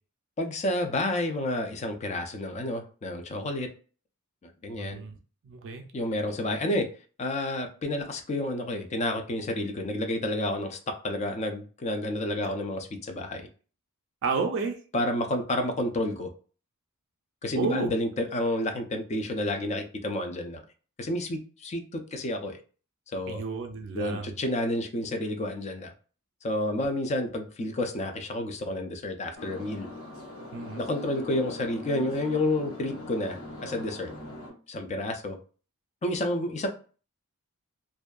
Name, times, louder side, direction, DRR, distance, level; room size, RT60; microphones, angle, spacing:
voice 1, 0.4-3.7 4.4-5.0 5.9-6.9 7.2-13.5 14.9-16.3 17.4-20.6 21.0-22.6 23.1-23.4 23.9-25.9 26.4-29.9 30.8-34.1 34.7-35.4 36.0-36.7, left 1 dB, 30° left, 5 dB, 0.4 m, -30 dB
voice 2, 4.7-5.2 5.4-5.8 14.2-14.8 17.5-17.9 23.3-24.3 30.5-30.9, right 4 dB, 60° right, 5 dB, 0.4 m, -31 dB
sound 1, 29.3-34.5, left 2 dB, 90° left, 1.1 m, -41 dB
2.6 x 2.2 x 2.3 m, 0.38 s
head